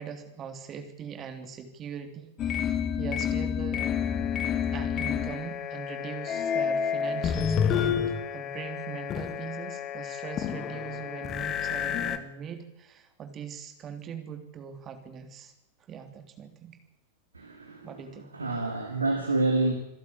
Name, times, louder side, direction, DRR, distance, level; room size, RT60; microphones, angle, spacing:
voice 1, 0.0-3.8 4.7-15.5 15.9-16.8 17.8-18.3, right 7 dB, 30° right, 7 dB, 3.2 m, -41 dB
sound 1, 2.4-12.2, left 8 dB, 30° left, 1.7 m, -29 dB
voice 2, 17.3-17.9 18.3-19.7, right 2 dB, 80° right, 5 dB, 2.3 m, -27 dB
26.5 x 11.5 x 8.8 m, 0.92 s
figure-of-eight pair, 90°, 0 cm